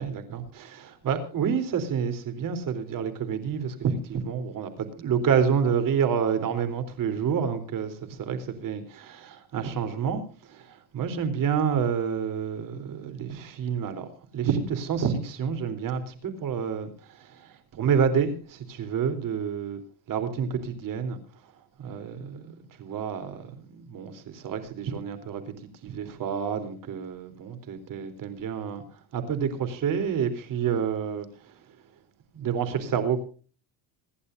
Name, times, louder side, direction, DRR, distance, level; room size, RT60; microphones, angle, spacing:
voice 1, 0.0-19.8 20.1-21.2 21.8-25.5 25.8-31.6 32.3-33.2, right 7 dB, 45° right, 3.7 m, -29 dB
27.0 x 11.0 x 2.6 m
cardioid pair, 125°, 44 cm